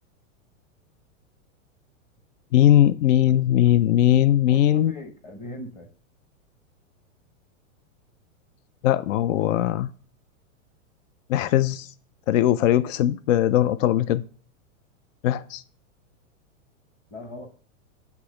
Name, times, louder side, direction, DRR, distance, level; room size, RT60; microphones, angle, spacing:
voice 1, 2.5-4.9 8.8-9.9 11.3-11.9 12.3-14.2 15.2-15.6, left 12 dB, 70° left, 0.5 m, -20 dB
voice 2, 4.5-5.9 17.1-17.5, equal, 20° left, 0.8 m, -39 dB
8.2 x 3.0 x 5.0 m
supercardioid pair, 145°, 39 cm